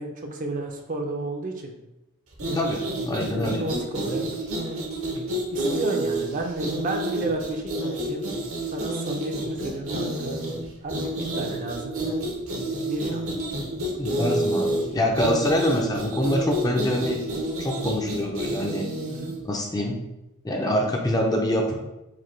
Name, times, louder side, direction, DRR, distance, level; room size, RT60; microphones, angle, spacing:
voice 1, 0.0-1.7 3.3-4.2 5.5-8.3 8.7-10.4 10.8-12.2 12.9-13.5 19.1-19.3, right 2 dB, 35° right, 3 dB, 0.5 m, -32 dB
sound 1, 2.3-19.4, right 1 dB, 70° right, 0.9 m, -29 dB
voice 2, 3.1-3.6 14.0-17.2 17.6-18.9 19.4-20.0 20.4-21.7, equal, 15° left, 1 dB, 0.4 m, -25 dB
4.9 x 2.2 x 4.3 m, 0.93 s
head